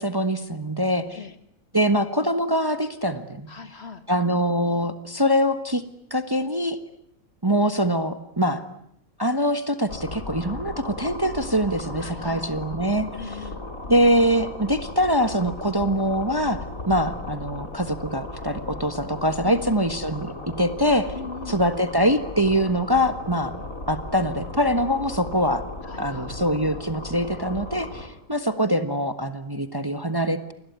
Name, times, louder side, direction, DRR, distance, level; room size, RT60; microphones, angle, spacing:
voice 1, 0.0-1.2 1.7-3.5 4.1-5.8 6.1-6.8 7.4-8.6 9.2-13.4 13.9-21.1 21.5-23.5 23.9-25.6 26.0-30.5, equal, 15° right, 9 dB, 1.4 m, -23 dB
voice 2, 3.5-4.1 12.0-12.5 13.1-13.7 19.4-19.8 21.1-21.6 25.8-26.4, left 4 dB, 45° left, 10 dB, 1.9 m, -39 dB
sound 1, 9.9-28.1, left 2 dB, 65° left, 4.5 m, -36 dB
28.5 x 21.5 x 9.5 m, 0.72 s
omnidirectional pair, 1.5 m